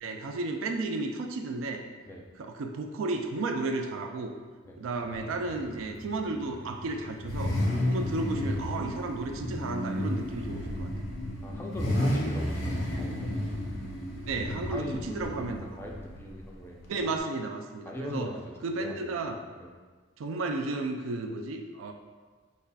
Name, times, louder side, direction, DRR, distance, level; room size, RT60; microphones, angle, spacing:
voice 1, 0.0-1.8 2.4-4.3 4.8-7.6 7.9-10.9 14.3-15.6 16.9-18.3 18.6-19.4 20.2-21.9, right 3 dB, 85° right, 5 dB, 0.4 m, -33 dB
Car / Idling / Accelerating revving vroom, 5.1-17.2, left 1 dB, 75° left, 0.7 m, -33 dB
voice 2, 11.4-13.3 14.6-17.3 17.8-19.7, left 1 dB, 10° left, -1 dB, 0.3 m, -41 dB
5.2 x 2.4 x 2.2 m, 1.4 s
head